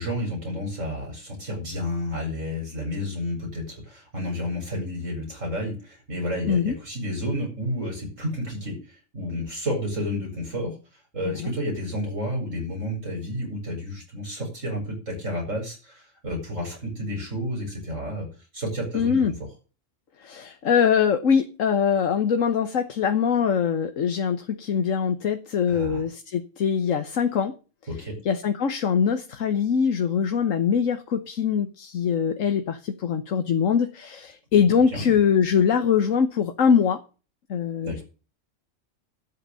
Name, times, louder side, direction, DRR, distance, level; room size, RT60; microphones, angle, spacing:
voice 1, 0.0-8.7 9.1-10.7 11.1-18.3 18.5-19.2 25.7-26.0 27.9-28.2 34.9-35.2 37.8-38.0, equal, 75° right, -1 dB, 8.3 m, -31 dB
voice 2, 18.9-19.3 20.2-27.5 28.2-37.0 37.5-38.0, left 7 dB, 90° left, 7 dB, 1.5 m, -23 dB
12.5 x 7.9 x 6.9 m, 0.34 s
omnidirectional pair, 1.3 m